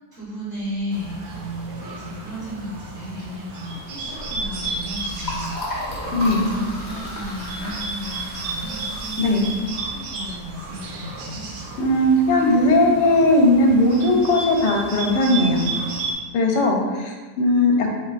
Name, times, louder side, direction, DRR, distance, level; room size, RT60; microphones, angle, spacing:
voice 1, 0.0-9.5 9.8-11.5 16.4-16.6, equal, 35° right, -13 dB, 1.3 m, -34 dB
Bird, 0.9-16.1, right 3 dB, 80° right, 1.2 m, -33 dB
Liquid, 4.0-10.7, left 1 dB, 35° left, 0.3 m, -34 dB
voice 2, 6.1-6.5 9.2-9.5 11.8-15.6 16.3-17.9, left 1 dB, 85° left, 1 dB, 1.3 m, -18 dB
3.8 x 3.6 x 2.4 m, 1.3 s
omnidirectional pair, 1.8 m